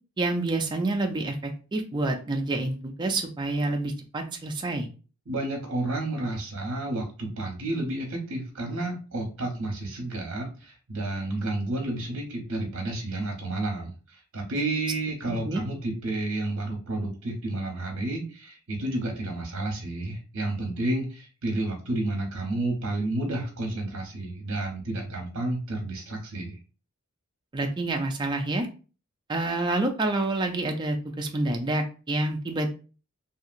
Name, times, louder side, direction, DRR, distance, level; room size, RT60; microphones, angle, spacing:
voice 1, 0.2-4.9 15.5-15.6 27.5-28.7 29.3-32.7, right 2 dB, 20° right, 3 dB, 0.3 m, -28 dB
voice 2, 5.3-26.6, right 2 dB, 60° right, 1 dB, 0.8 m, -31 dB
2.8 x 2.7 x 2.4 m, 0.36 s
head